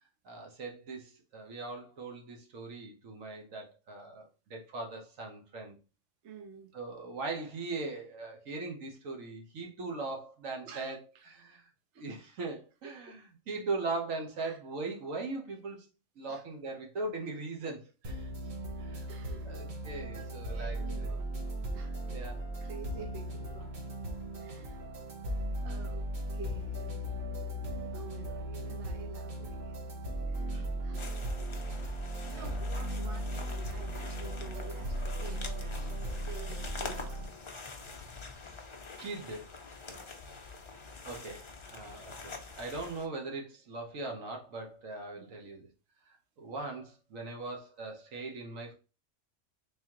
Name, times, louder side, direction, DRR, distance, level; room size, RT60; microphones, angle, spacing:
voice 1, 0.2-5.7 6.7-11.0 11.3-11.6 12.0-15.9 16.2-18.3 18.8-19.1 19.4-21.1 22.1-22.4 30.5-30.7 32.2-32.6 39.0-39.5 41.0-45.7 46.1-48.7, right 3 dB, 85° right, 1.4 m, -40 dB
voice 2, 6.2-6.7 10.6-11.2 11.9-12.1 12.8-13.2 14.4-14.6 16.3-16.4 19.1-19.6 20.1-21.2 21.7-22.0 22.6-23.7 24.4-25.0 25.6-26.9 27.9-29.9 30.3-31.9 32.3-37.2 39.9-40.1 45.1-45.3, right 5 dB, 65° right, 0.9 m, -50 dB
sound 1, 18.0-37.3, right 1 dB, 45° right, 0.8 m, -37 dB
sound 2, 31.0-43.1, left 4 dB, 40° left, 0.4 m, -46 dB
3.7 x 3.3 x 2.9 m
omnidirectional pair, 1.3 m